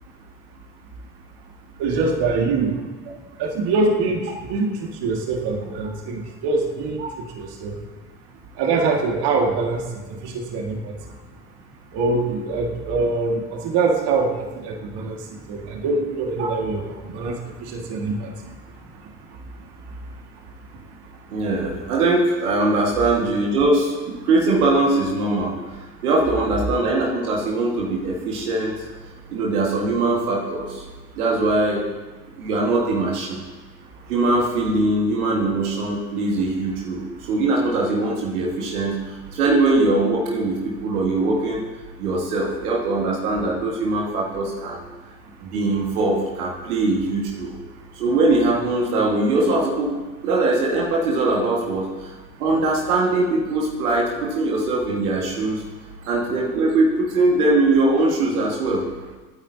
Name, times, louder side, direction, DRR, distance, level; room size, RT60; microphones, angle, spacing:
voice 1, 1.8-2.8 3.4-7.8 8.6-11.0 11.9-18.3, right 3 dB, 65° right, 1 dB, 1.9 m, -24 dB
voice 2, 21.3-25.5 26.0-28.7 29.3-30.8 31.2-31.9 32.4-33.4 34.1-38.9 39.3-41.6 42.0-44.8 45.4-47.5 48.0-49.9 50.2-52.1 52.4-55.6 56.0-58.8, right 2 dB, 90° right, -2 dB, 1.7 m, -21 dB
25.5 x 9.3 x 2.7 m, 1.2 s
hypercardioid pair, 60°, 43 cm